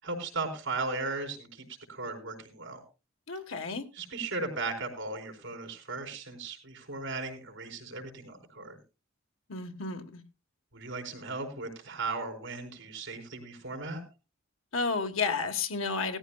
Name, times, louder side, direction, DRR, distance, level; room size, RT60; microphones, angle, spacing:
voice 1, 0.0-2.8 3.9-8.8 10.7-14.0, right 3 dB, 65° right, 4.6 m, -37 dB
voice 2, 3.3-3.8 9.5-10.2 14.7-16.2, left 4 dB, 85° left, 1.5 m, -31 dB
18.0 x 14.0 x 2.3 m
head